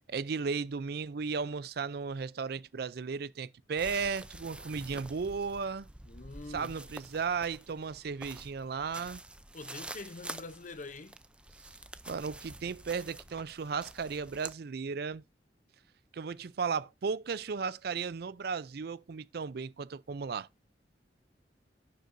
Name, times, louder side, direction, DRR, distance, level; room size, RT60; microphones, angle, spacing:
voice 1, 0.1-5.9 6.5-9.2 12.1-15.2 16.1-20.5, right 5 dB, 60° right, 0.5 m, -35 dB
sound 1, 3.8-14.5, right 2 dB, 5° right, 0.5 m, -48 dB
voice 2, 6.1-6.7 9.5-11.2, left 3 dB, 45° left, 0.7 m, -45 dB
11.0 x 9.2 x 2.6 m
head